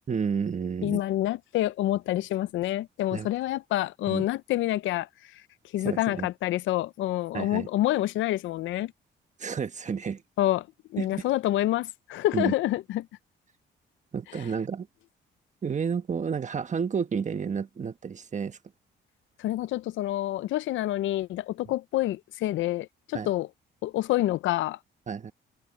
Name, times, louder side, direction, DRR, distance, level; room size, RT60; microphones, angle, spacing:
voice 1, 0.1-1.0 3.1-3.3 4.1-4.3 5.8-6.3 7.3-7.7 9.4-10.2 11.0-11.1 12.3-12.5 14.1-14.9 15.6-18.6 23.1-23.3 25.1-25.3, right 6 dB, 35° right, 1.4 m, -30 dB
voice 2, 0.8-5.4 5.7-8.9 10.4-10.7 10.9-13.1 14.3-14.4 19.4-23.5 23.8-24.8, left 14 dB, 75° left, 0.5 m, -27 dB
cardioid pair, 90°, 20 cm